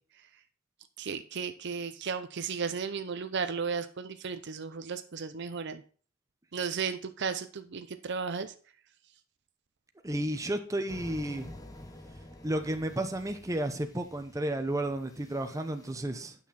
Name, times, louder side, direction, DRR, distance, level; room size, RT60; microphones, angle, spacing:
voice 1, 1.0-5.8 6.5-8.5, right 5 dB, 55° right, 10 dB, 0.6 m, -34 dB
voice 2, 10.0-11.5 12.4-16.4, right 1 dB, 15° right, 6 dB, 0.8 m, -32 dB
sound 1, 10.9-15.9, left 1 dB, 15° left, 1.0 m, -49 dB
9.3 x 6.1 x 4.2 m, 0.42 s
head